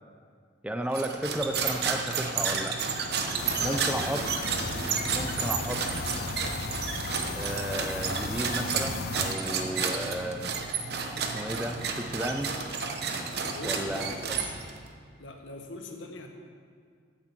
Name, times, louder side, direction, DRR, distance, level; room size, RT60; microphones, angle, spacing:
voice 1, 0.6-2.8 3.6-4.2 5.1-5.8 7.3-10.5 11.2-12.5 13.6-14.5, right 1 dB, 5° right, 6 dB, 0.4 m, -34 dB
sound 1, 0.9-14.9, right 5 dB, 55° right, 0.9 m, -31 dB
voice 2, 3.4-4.0 13.5-14.2 15.2-16.3, left 2 dB, 85° left, 3 dB, 1.3 m, -41 dB
sound 2, 3.4-9.4, left 4 dB, 55° left, 0.5 m, -36 dB
8.9 x 7.5 x 7.2 m, 2.1 s
head